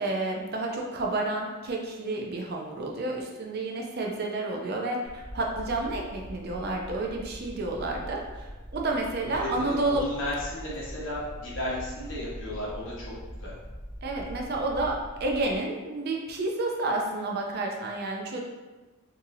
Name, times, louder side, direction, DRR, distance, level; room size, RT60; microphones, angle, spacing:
voice 1, 0.0-10.0 14.0-18.4, right 2 dB, 50° right, 0 dB, 0.5 m, -30 dB
sound 1, 5.0-15.6, equal, 35° left, 1.4 m, -42 dB
voice 2, 9.3-13.1 13.4-13.5, left 1 dB, 65° left, -6 dB, 1.2 m, -34 dB
4.0 x 2.6 x 2.6 m, 1.2 s
head